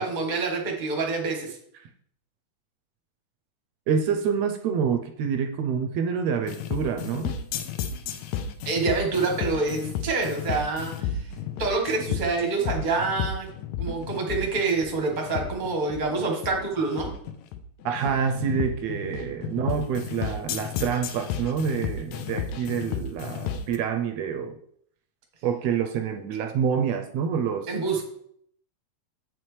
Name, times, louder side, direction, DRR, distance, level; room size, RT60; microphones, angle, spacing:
voice 1, 0.0-1.6 8.6-11.2 11.6-13.5 13.8-17.1 27.7-28.0, right 3 dB, 35° right, 1 dB, 0.7 m, -27 dB
voice 2, 3.9-7.3 17.8-24.6 25.4-27.7, right 7 dB, 80° right, 6 dB, 1.6 m, -27 dB
sound 1, 6.5-23.8, left 7 dB, 85° left, 2.0 m, -32 dB
7.7 x 5.9 x 3.2 m, 0.65 s
omnidirectional pair, 3.3 m